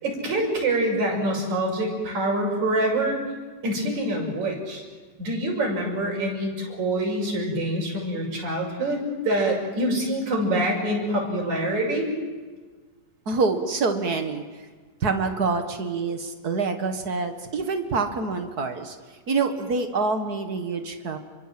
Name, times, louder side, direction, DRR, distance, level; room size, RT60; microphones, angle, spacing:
voice 1, 0.0-3.2 3.6-4.8 5.2-12.1, right 1 dB, 60° right, -2 dB, 7.7 m, -25 dB
voice 2, 13.2-14.4 15.0-19.0 19.3-21.2, right 4 dB, 40° right, 6 dB, 1.5 m, -26 dB
29.0 x 24.5 x 7.7 m, 1.4 s
omnidirectional pair, 3.7 m